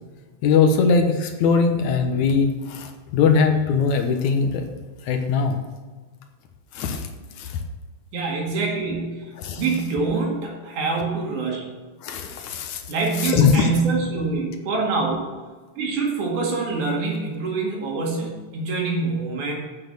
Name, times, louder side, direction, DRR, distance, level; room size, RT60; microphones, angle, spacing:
voice 1, 0.4-4.6 5.1-5.6 6.7-7.1 7.4-7.6 9.4-9.6 12.0-12.8 13.2-13.7, left 5 dB, 70° left, 5 dB, 2.2 m, -20 dB
voice 2, 8.1-11.7 12.9-15.2 15.8-19.5, right 3 dB, 70° right, -1 dB, 3.7 m, -25 dB
8.6 x 7.8 x 6.7 m, 1.4 s
omnidirectional pair, 3.6 m